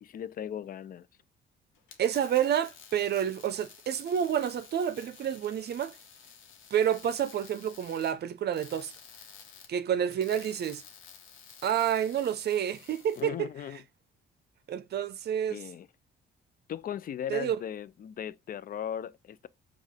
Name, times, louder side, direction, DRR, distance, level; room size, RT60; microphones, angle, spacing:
voice 1, 0.0-1.1 13.2-13.8 15.5-15.9 16.7-19.5, left 9 dB, 45° left, 0.4 m, -38 dB
sound 1, 1.7-13.2, left 7 dB, 85° left, 1.2 m, -52 dB
voice 2, 2.0-5.9 6.7-8.9 9.7-10.8 11.6-13.5 14.7-15.6 17.3-17.6, right 9 dB, 55° right, 0.6 m, -29 dB
5.4 x 2.5 x 3.4 m
cardioid pair, 90°, 20 cm